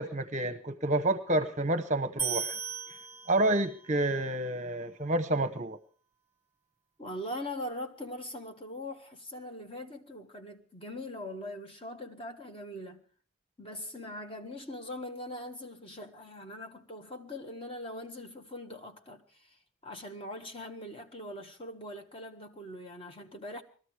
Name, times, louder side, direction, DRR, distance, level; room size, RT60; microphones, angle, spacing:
voice 1, 0.0-2.6 3.3-5.8, right 1 dB, 35° right, 0.9 m, -29 dB
sound 1, 2.2-3.8, right 6 dB, 10° right, 1.7 m, -36 dB
voice 2, 7.0-13.0 13.6-19.6 19.8-23.6, left 1 dB, 25° left, 1.5 m, -41 dB
20.5 x 13.5 x 4.8 m
head